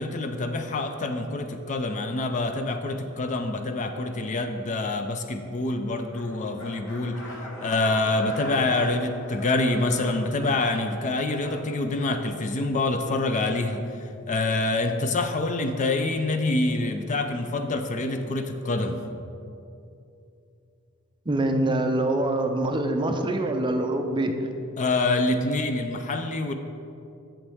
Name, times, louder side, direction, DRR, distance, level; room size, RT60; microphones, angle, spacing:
voice 1, 0.0-7.2 7.6-19.0 24.8-26.5, left 2 dB, 35° left, 7 dB, 0.4 m, -26 dB
sound 1, 6.1-12.2, left 1 dB, 65° left, 1.5 m, -41 dB
voice 2, 21.3-24.3, right 1 dB, 20° right, 5 dB, 0.5 m, -24 dB
8.1 x 7.1 x 3.5 m, 2.7 s
head